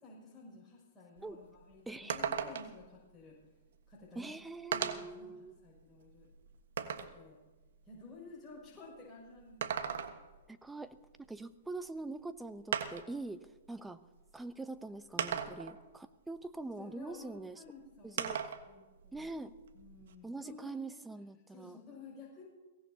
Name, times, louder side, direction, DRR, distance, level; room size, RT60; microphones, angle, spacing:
voice 1, 0.0-3.4 3.9-4.3 4.7-6.3 6.8-7.4 7.9-9.9 15.1-15.7 16.8-18.2 18.7-19.3 19.7-20.9 21.5-22.5, left 3 dB, 15° left, -6 dB, 6.6 m, -53 dB
sound 1, 1.2-1.3 1.6-1.7 2.1-2.8 3.9-4.0 4.7-5.2 5.8-7.2 9.4-10.4 11.9-12.0 12.7-13.2 14.2-14.3 15.2-15.8 18.2-18.7 19.0-20.1, right 8 dB, 70° right, 1.4 m, -37 dB
voice 2, 1.9-2.2 4.1-5.6 10.5-11.0 11.3-14.0 14.3-17.6 18.0-18.4 19.1-19.5 20.2-21.8, right 2 dB, 5° right, 11 dB, 0.9 m, -44 dB
23.0 x 17.5 x 2.9 m, 1.2 s
hypercardioid pair, 120°, 0 cm